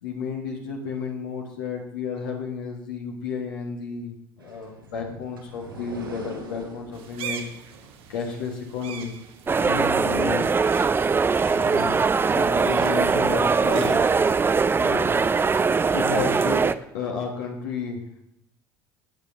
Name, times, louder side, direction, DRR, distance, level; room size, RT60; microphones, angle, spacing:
voice 1, 0.0-7.5 8.1-9.1 9.6-10.5 11.5-12.0 12.3-14.0 14.8-15.1 15.9-16.7 16.9-18.0, left 5 dB, 75° left, 0 dB, 1.4 m, -32 dB
sound 1, 4.4-9.1, right 4 dB, 90° right, 1.4 m, -43 dB
sound 2, 6.9-16.7, right 7 dB, 55° right, 1.1 m, -43 dB
sound 3, 9.5-16.7, right 5 dB, 20° right, 0.4 m, -21 dB
15.0 x 8.6 x 2.6 m, 0.76 s
figure-of-eight pair, 65°, 11 cm